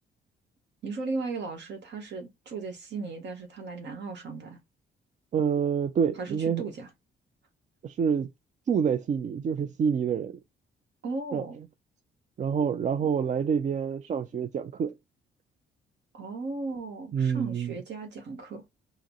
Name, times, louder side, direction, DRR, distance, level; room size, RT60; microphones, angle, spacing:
voice 1, 0.8-4.6 6.2-6.9 11.0-11.6 16.1-18.6, right 3 dB, 60° right, 1.0 m, -36 dB
voice 2, 5.3-6.7 7.8-8.3 8.7-10.4 11.3-11.4 12.4-15.0 17.1-17.8, right 7 dB, 40° right, 0.4 m, -27 dB
4.9 x 2.0 x 2.8 m
cardioid pair, 90°, 20 cm